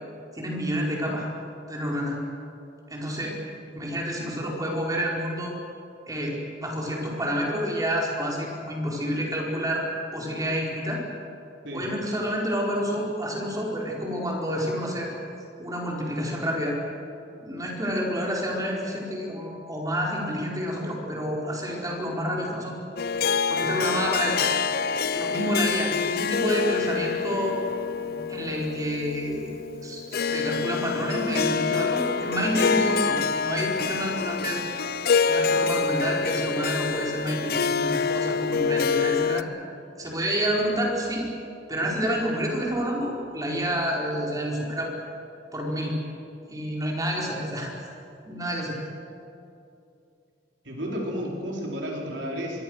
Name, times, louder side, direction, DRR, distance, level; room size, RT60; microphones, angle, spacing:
voice 1, 0.3-1.2 1.7-2.2 2.9-3.3 3.7-5.5 6.1-9.8 10.1-11.0 11.7-15.1 15.6-16.8 17.4-22.8 23.5-24.4 25.1-27.6 28.0-29.5 29.8-34.6 35.2-39.4 40.0-41.3 41.7-44.9 45.5-46.0 46.5-47.7 48.2-48.8, equal, 20° right, -2 dB, 4.9 m, -29 dB
Harp, 23.0-39.4, left 5 dB, 60° left, 0.6 m, -26 dB
voice 2, 50.6-52.6, equal, 75° right, -1 dB, 4.6 m, -32 dB
25.5 x 22.5 x 6.6 m, 2.6 s
head